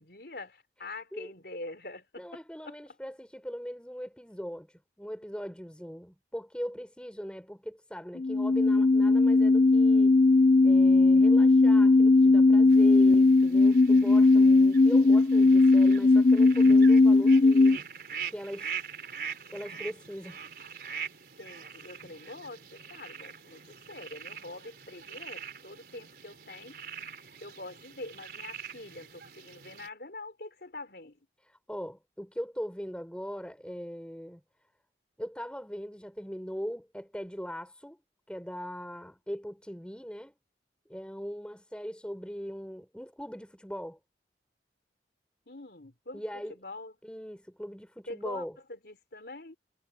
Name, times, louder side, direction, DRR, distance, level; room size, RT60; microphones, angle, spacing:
voice 1, 0.0-2.7 21.4-26.8 27.4-31.2 45.5-46.9 48.1-49.6, left 2 dB, 65° left, 3.8 m, -45 dB
voice 2, 2.2-10.2 10.6-17.8 18.3-18.7 19.5-20.4 31.5-34.4 35.2-38.0 38.3-40.3 40.9-44.0 46.1-46.6 47.0-48.6, equal, 5° left, 5.8 m, -40 dB
sound 1, 8.2-17.8, left 3 dB, 40° left, 0.4 m, -19 dB
sound 2, 12.7-29.9, right 7 dB, 55° right, 4.1 m, -44 dB
head